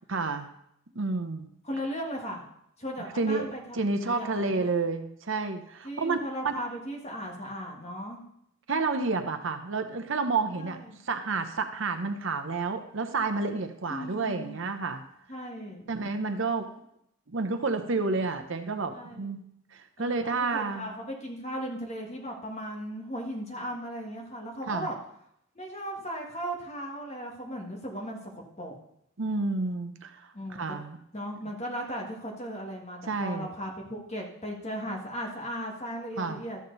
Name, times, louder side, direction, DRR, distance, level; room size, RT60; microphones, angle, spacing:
voice 1, 0.1-0.5 0.9-1.5 3.1-6.2 6.4-6.5 8.7-15.0 15.9-16.7 17.3-19.4 19.7-20.9 24.7-24.9 29.2-31.0 33.1-33.5 36.2-36.4, right 3 dB, 60° right, 7 dB, 0.8 m, -30 dB
voice 2, 1.6-2.4 2.8-4.3 4.5-4.7 5.8-8.2 10.6-11.0 13.9-14.6 15.3-15.9 18.9-19.3 20.0-25.0 25.5-28.8 30.3-30.6 31.1-36.6, equal, 30° left, 0 dB, 1.7 m, -37 dB
13.0 x 7.5 x 4.0 m, 0.75 s
head